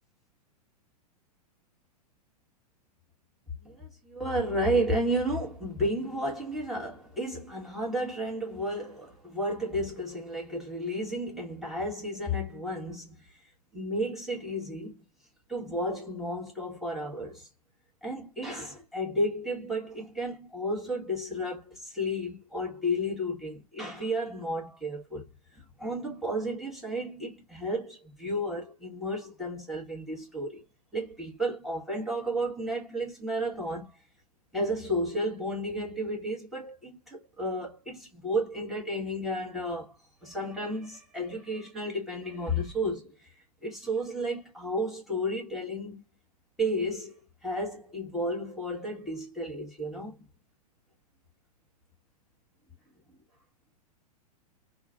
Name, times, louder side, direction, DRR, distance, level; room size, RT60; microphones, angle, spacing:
voice 1, 3.5-15.0 15.5-17.5 18.0-25.2 25.5-30.6 30.9-34.0 34.5-40.0 40.2-46.0 46.6-50.3, equal, ahead, 1.7 m, -32 dB
3.6 x 2.5 x 2.5 m
figure-of-eight pair, 100°, 20 cm